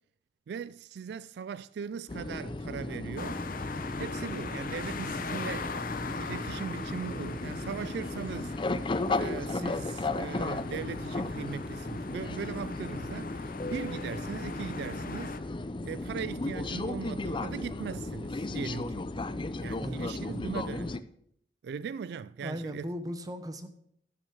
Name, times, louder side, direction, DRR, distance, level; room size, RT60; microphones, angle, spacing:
voice 1, 0.5-3.4 4.0-8.6 9.1-15.4 15.8-19.1 19.6-21.0 21.6-22.9, right 6 dB, 65° right, 0.3 m, -39 dB
sound 1, 2.1-21.0, left 2 dB, 30° left, 0.5 m, -35 dB
sound 2, 3.2-15.4, left 4 dB, 50° left, 0.8 m, -41 dB
voice 2, 19.8-20.5 22.4-23.7, equal, 20° right, 1.0 m, -38 dB
11.5 x 6.2 x 6.4 m
head